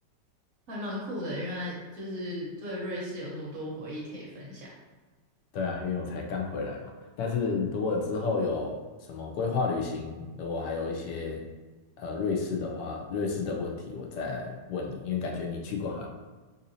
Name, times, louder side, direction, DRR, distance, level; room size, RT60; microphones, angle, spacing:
voice 1, 0.7-4.7, equal, 55° right, -5 dB, 1.2 m, -36 dB
voice 2, 5.5-11.4 12.0-16.1, left 4 dB, 80° left, 1 dB, 1.2 m, -31 dB
4.0 x 2.6 x 2.6 m, 1.3 s
omnidirectional pair, 1.9 m